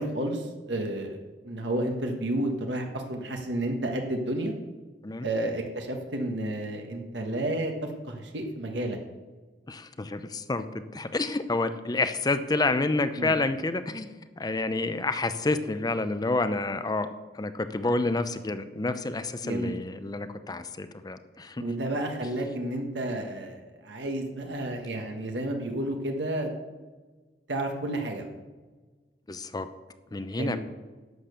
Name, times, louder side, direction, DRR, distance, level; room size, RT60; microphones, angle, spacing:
voice 1, 0.0-4.5 5.2-9.0 13.2-13.3 19.4-19.8 21.6-26.5 27.5-28.3 30.4-30.6, right 1 dB, 80° right, 3 dB, 1.4 m, -31 dB
voice 2, 9.7-10.7 10.9-17.1 17.3-21.6 29.3-29.7 30.1-30.6, left 2 dB, 20° left, 11 dB, 0.5 m, -29 dB
11.5 x 6.8 x 6.8 m, 1.3 s
head